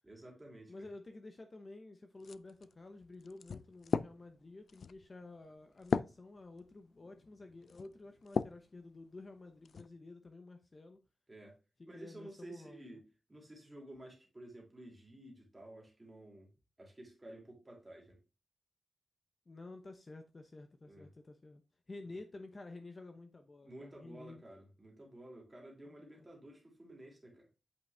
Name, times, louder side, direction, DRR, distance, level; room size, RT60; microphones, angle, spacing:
voice 1, 0.0-0.9 11.3-11.6 11.9-16.5 16.8-18.2 20.8-21.1 23.6-27.5, right 1 dB, 15° right, 2.8 m, -53 dB
voice 2, 0.7-11.0 11.8-13.0 19.5-21.6 21.9-24.4 25.9-26.3 27.3-27.5, left 2 dB, 30° left, 0.9 m, -51 dB
sound 1, 2.2-8.7 9.2-9.9, left 5 dB, 65° left, 0.4 m, -39 dB
8.4 x 5.2 x 3.4 m
wide cardioid pair, 160°, 0 cm